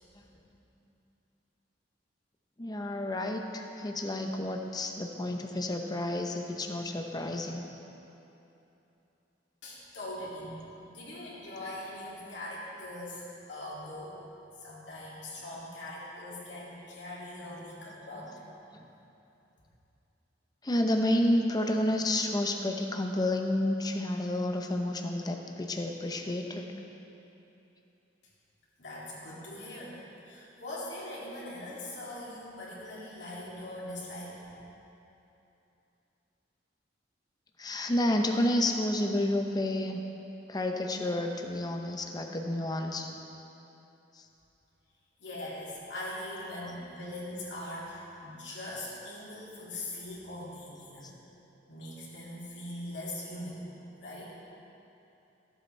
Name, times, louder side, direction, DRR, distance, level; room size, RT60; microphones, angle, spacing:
voice 1, 2.6-7.6 20.6-26.7 37.6-40.0 40.5-43.1, left 1 dB, 20° left, 3 dB, 0.7 m, -30 dB
voice 2, 9.6-10.6 10.9-14.2 14.6-18.3 28.8-30.0 30.2-34.4 45.2-51.2 51.7-53.7 54.0-54.3, left 1 dB, 70° left, -7 dB, 2.5 m, -41 dB
14.5 x 7.8 x 3.3 m, 2.9 s
head